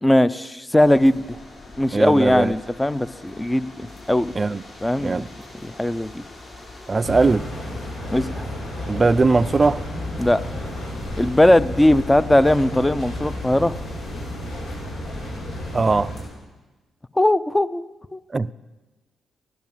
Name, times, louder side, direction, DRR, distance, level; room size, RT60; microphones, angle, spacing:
voice 1, 0.0-1.4 1.8-4.3 4.8-5.3 5.6-6.2 8.1-8.5 10.2-10.4 11.2-13.8 17.2-17.8 18.1-18.2, left 1 dB, 15° left, 0.6 m, -19 dB
sound 1, 0.8-16.3, left 2 dB, 50° left, 6.7 m, -43 dB
voice 2, 1.9-2.5 4.4-4.6 5.0-5.3 6.9-7.5 8.9-9.8 15.7-16.1 18.3-18.5, right 3 dB, 35° right, 0.5 m, -20 dB
sound 2, 7.0-16.2, left 1 dB, 75° left, 5.1 m, -32 dB
15.0 x 12.0 x 7.4 m
supercardioid pair, 60°, 0 cm